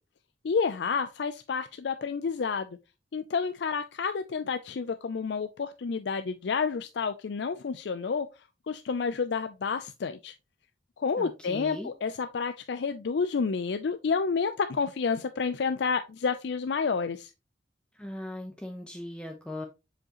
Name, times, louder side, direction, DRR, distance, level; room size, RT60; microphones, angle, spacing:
voice 1, 0.4-2.7 3.1-8.3 8.7-10.3 11.0-17.3, left 5 dB, 65° left, 0.4 m, -30 dB
voice 2, 11.2-11.9 17.9-19.7, left 1 dB, 5° left, 0.7 m, -39 dB
7.2 x 5.1 x 2.9 m
head